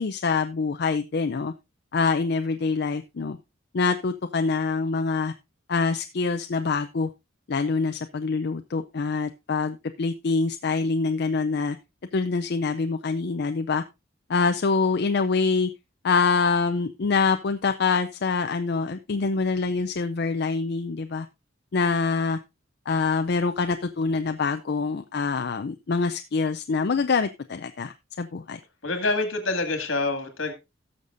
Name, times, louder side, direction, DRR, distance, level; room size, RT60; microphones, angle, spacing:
voice 1, 0.0-1.5 1.9-3.4 3.7-5.3 5.7-7.1 7.5-11.8 12.1-13.8 14.3-15.7 16.0-21.3 21.7-22.4 22.9-28.6, left 4 dB, 55° left, 8 dB, 0.5 m, -25 dB
voice 2, 28.8-30.5, left 3 dB, 75° left, 6 dB, 2.2 m, -26 dB
17.5 x 6.6 x 2.6 m, 0.24 s
head